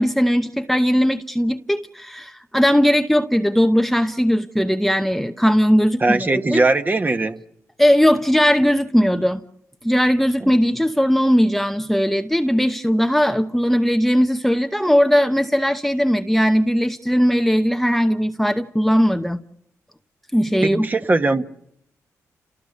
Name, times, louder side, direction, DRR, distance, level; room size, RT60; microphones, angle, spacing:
voice 1, 0.0-6.6 7.8-9.4 9.8-19.4 20.3-20.9, equal, 5° left, 1.0 m, -18 dB
voice 2, 6.0-7.4 10.4-10.5 20.6-21.4, right 2 dB, 30° right, 1.7 m, -20 dB
28.5 x 19.0 x 6.9 m
cardioid pair, 75°, 6 cm